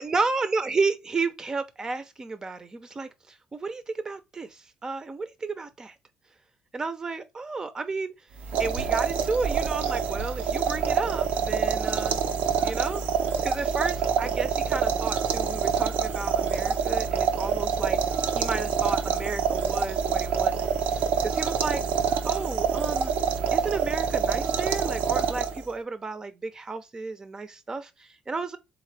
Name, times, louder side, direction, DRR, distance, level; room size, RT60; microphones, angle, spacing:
voice 1, 0.0-5.9 6.7-8.1 8.6-12.2 12.6-13.0 13.4-18.0 18.3-21.8 22.2-23.2 23.5-28.6, right 4 dB, 25° right, 0.8 m, -32 dB
sound 1, 8.4-25.8, right 6 dB, 70° right, 0.8 m, -26 dB
3.8 x 3.8 x 3.4 m
cardioid pair, 110°, 3 cm